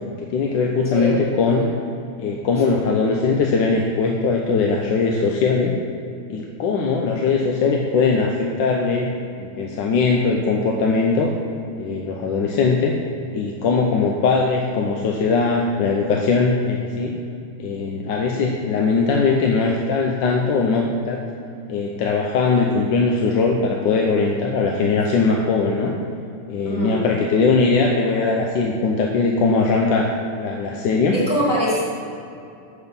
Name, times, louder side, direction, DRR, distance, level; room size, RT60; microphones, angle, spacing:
voice 1, 0.2-1.6 2.2-5.7 6.3-9.1 9.4-11.3 11.7-13.0 13.3-17.2 17.6-21.2 21.7-25.9 26.5-31.2, left 4 dB, 85° left, 0 dB, 1.4 m, -20 dB
voice 2, 26.6-27.1 31.1-31.8, equal, 5° right, -9 dB, 2.0 m, -23 dB
7.9 x 6.3 x 5.3 m, 2.6 s
omnidirectional pair, 2.0 m